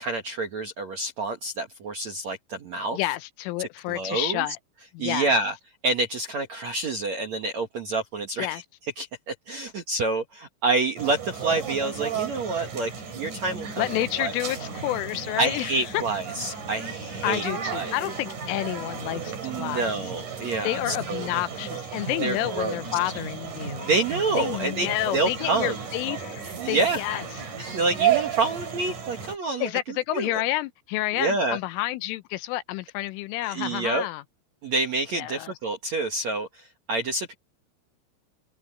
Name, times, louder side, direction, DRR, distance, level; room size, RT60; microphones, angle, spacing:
voice 1, 0.0-3.0 3.6-4.4 5.0-5.5 5.8-8.6 9.0-13.8 14.2-14.3 15.4-17.9 19.4-21.3 22.2-22.8 23.8-25.8 26.6-27.0 27.6-30.4 31.2-31.6 33.4-34.1 34.6-37.3, right 3 dB, 70° right, 1.7 m, -28 dB
voice 2, 2.9-4.6 4.9-5.3 8.4-8.6 13.8-16.0 17.2-19.9 20.6-23.9 24.4-27.5 29.6-34.2 35.1-35.5, left 16 dB, 80° left, 3.3 m, -29 dB
sound 1, 11.0-29.4, right 8 dB, 40° right, 5.3 m, -33 dB
omnidirectional pair, 5.9 m